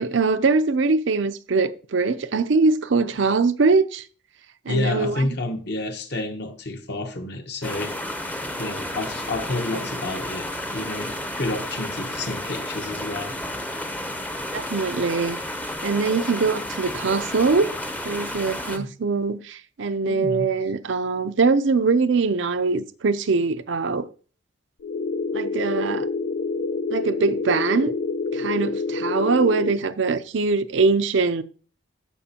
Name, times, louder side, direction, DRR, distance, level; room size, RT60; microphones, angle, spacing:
voice 1, 0.0-4.0 4.7-5.3 14.5-15.4 15.8-17.7 18.0-24.1 25.3-26.1 26.9-27.9 28.3-31.4, right 4 dB, 65° right, 0.5 m, -22 dB
voice 2, 4.7-8.0 8.6-13.4 18.8-18.9 20.0-20.5, left 2 dB, 55° left, 1.1 m, -29 dB
sound 1, 7.6-18.8, left 1 dB, 10° left, 0.7 m, -32 dB
sound 2, 24.8-29.8, left 3 dB, 75° left, 0.5 m, -27 dB
14.0 x 5.2 x 2.8 m
head